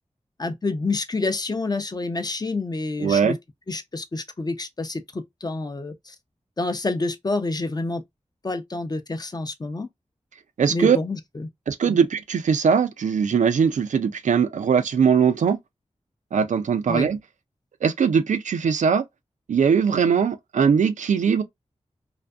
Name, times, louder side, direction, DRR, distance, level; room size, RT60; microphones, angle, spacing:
voice 1, 0.4-3.4 3.7-6.1 6.6-8.0 8.4-9.9 10.7-11.5 11.9-12.0 16.9-17.1, left 3 dB, 35° left, 0.5 m, -28 dB
voice 2, 3.0-3.4 10.6-11.0 11.7-15.6 16.3-17.2 17.8-19.0 19.5-21.4, right 6 dB, 90° right, 0.4 m, -20 dB
2.5 x 2.5 x 2.3 m
wide cardioid pair, 70°, 12 cm